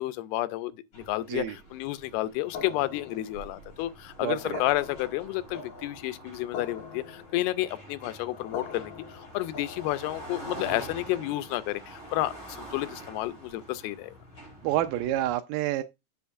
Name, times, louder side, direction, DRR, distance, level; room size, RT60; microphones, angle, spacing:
voice 1, 0.0-14.1, left 16 dB, 85° left, 2.5 m, -31 dB
sound 1, 0.9-15.3, right 1 dB, 30° left, 5.4 m, -46 dB
sound 2, 2.5-10.3, left 6 dB, 65° left, 2.7 m, -44 dB
voice 2, 4.2-4.6 14.6-15.8, right 13 dB, 80° right, 2.0 m, -28 dB
7.8 x 6.9 x 2.4 m
omnidirectional pair, 4.4 m